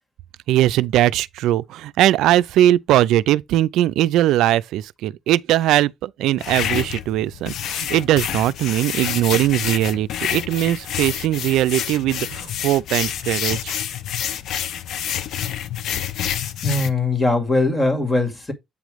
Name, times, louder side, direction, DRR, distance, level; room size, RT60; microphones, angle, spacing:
voice 1, 0.5-13.7, right 13 dB, 90° right, 0.4 m, -20 dB
sound 1, 6.4-16.9, left 10 dB, 75° left, 0.6 m, -28 dB
voice 2, 16.6-18.5, left 2 dB, 20° left, 2.3 m, -20 dB
8.3 x 3.1 x 5.0 m
cardioid pair, 90°, 0 cm